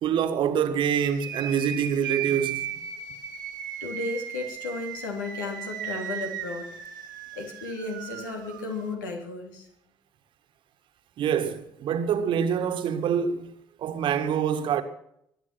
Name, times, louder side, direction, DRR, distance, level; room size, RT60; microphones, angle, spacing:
voice 1, 0.0-2.7 11.2-14.8, right 8 dB, 50° right, 1.8 m, -26 dB
sound 1, 1.0-8.9, right 10 dB, 75° right, 1.7 m, -36 dB
voice 2, 3.8-6.7 7.3-9.7, left 3 dB, 75° left, 3.4 m, -34 dB
23.0 x 10.0 x 6.1 m
figure-of-eight pair, 50°, 11 cm